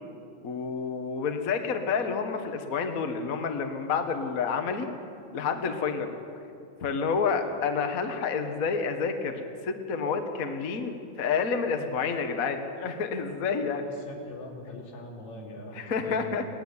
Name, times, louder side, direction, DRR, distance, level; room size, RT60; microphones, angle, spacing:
voice 1, 0.4-4.9 5.3-6.1 6.8-13.8 15.8-16.4, left 5 dB, 50° left, 6 dB, 1.1 m, -29 dB
voice 2, 13.7-16.5, left 1 dB, 70° left, 0 dB, 3.9 m, -43 dB
19.0 x 14.5 x 9.6 m, 2.5 s
omnidirectional pair, 3.4 m